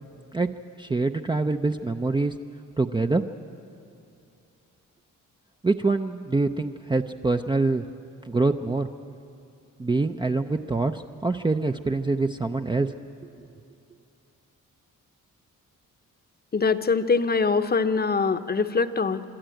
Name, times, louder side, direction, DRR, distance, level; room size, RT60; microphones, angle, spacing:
voice 1, 0.8-2.3 2.8-3.2 5.6-7.9 8.2-8.9 9.8-12.9, right 3 dB, 15° right, 5 dB, 0.5 m, -25 dB
voice 2, 16.5-19.2, left 4 dB, 30° left, 10 dB, 0.8 m, -23 dB
25.0 x 12.5 x 9.0 m, 2.6 s
cardioid pair, 90°, 32 cm